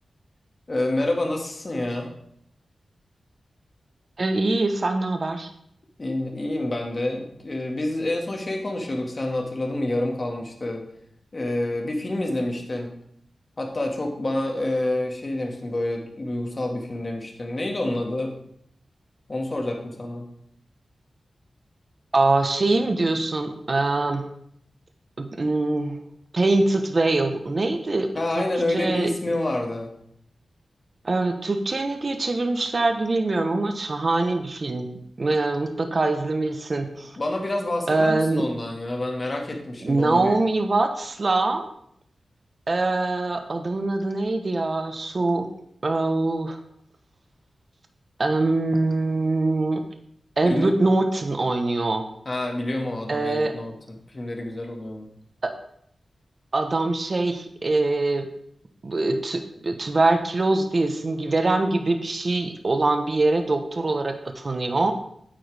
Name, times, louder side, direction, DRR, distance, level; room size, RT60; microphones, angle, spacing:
voice 1, 0.7-2.1 6.0-10.8 11.3-12.9 13.6-18.3 19.3-20.2 28.1-29.9 37.2-40.3 50.4-50.7 52.3-55.1, left 1 dB, 35° left, 1 dB, 2.0 m, -28 dB
voice 2, 4.2-5.5 22.1-24.3 25.2-26.0 26.3-28.1 28.7-29.1 31.0-34.9 35.2-37.1 37.9-38.4 39.8-41.6 42.7-45.5 45.8-46.6 48.2-49.8 50.4-52.0 53.1-53.5 55.4-55.5 56.5-58.3 58.8-64.9, right 2 dB, 40° right, 6 dB, 1.1 m, -23 dB
9.3 x 8.6 x 3.5 m, 0.70 s
wide cardioid pair, 90°, 0 cm